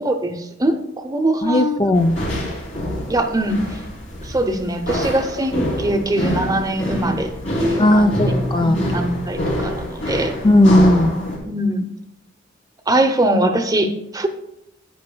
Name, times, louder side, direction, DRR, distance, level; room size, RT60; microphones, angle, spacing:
voice 1, 0.0-0.8 1.0-1.8 3.1-3.6 4.2-7.3 7.6-8.1 8.6-10.3 11.4-11.9 12.9-14.3, right 1 dB, 20° right, 6 dB, 0.7 m, -22 dB
voice 2, 1.4-2.1 7.8-8.8 10.4-11.1, left 1 dB, 25° left, 7 dB, 0.3 m, -15 dB
sound 1, 1.9-11.4, equal, 75° left, 2.9 m, -25 dB
11.0 x 9.4 x 2.3 m, 0.81 s
head